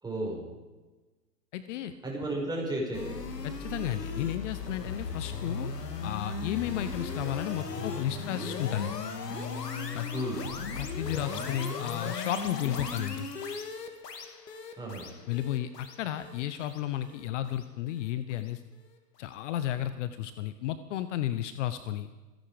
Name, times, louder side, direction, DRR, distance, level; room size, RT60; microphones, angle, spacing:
voice 1, 0.0-0.5 2.0-3.1 10.1-10.4 14.8-15.1, right 1 dB, 10° right, -2 dB, 5.4 m, -33 dB
voice 2, 1.5-1.9 3.4-5.7 6.0-9.0 9.9-10.1 10.8-13.3 15.3-18.6 19.2-22.1, left 12 dB, 50° left, 12 dB, 0.9 m, -33 dB
sound 1, 2.9-18.1, left 4 dB, 90° left, 2.3 m, -37 dB
27.5 x 10.5 x 5.0 m, 1.2 s
hypercardioid pair, 120°, 47 cm